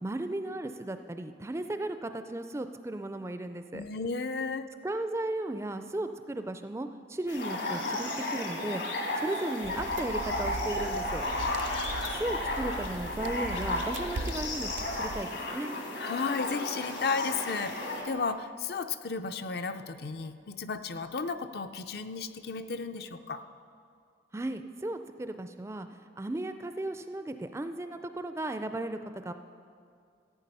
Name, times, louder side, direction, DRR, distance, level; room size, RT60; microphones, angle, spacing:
voice 1, 0.0-3.8 4.8-8.8 9.2-11.3 12.1-14.7 15.0-15.7 24.3-29.3, right 1 dB, 15° right, 9 dB, 0.3 m, -35 dB
voice 2, 3.7-4.7 16.0-23.4, left 4 dB, 55° left, 9 dB, 0.5 m, -34 dB
sound 1, 7.3-18.0, left 2 dB, 70° left, 2.0 m, -33 dB
sound 2, 9.6-15.2, right 3 dB, 80° right, 0.5 m, -40 dB
15.0 x 8.9 x 5.4 m, 2.4 s
head